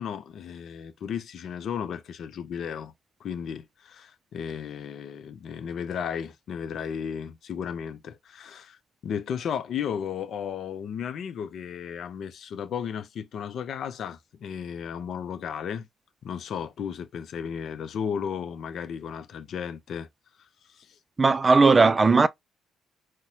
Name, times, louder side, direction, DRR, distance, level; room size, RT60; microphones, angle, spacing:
voice 1, 0.0-2.9 3.2-8.8 9.0-15.9 16.2-20.1 20.8-20.9, left 7 dB, 65° left, 0.6 m, -34 dB
voice 2, 21.2-22.3, right 4 dB, 30° right, 0.4 m, -17 dB
3.9 x 2.1 x 2.8 m
supercardioid pair, 70°, 0 cm